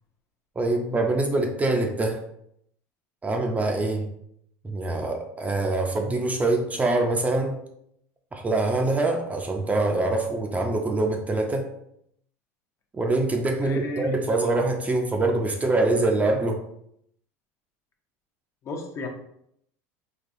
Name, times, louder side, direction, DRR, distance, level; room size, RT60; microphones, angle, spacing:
voice 1, 0.6-2.2 3.2-4.0 4.6-7.6 8.3-11.7 12.9-16.6, right 2 dB, 20° right, 3 dB, 0.5 m, -24 dB
voice 2, 13.6-14.2 18.6-19.1, left 2 dB, 40° left, 3 dB, 0.6 m, -32 dB
3.9 x 2.3 x 2.6 m, 0.73 s
supercardioid pair, 100°, 8 cm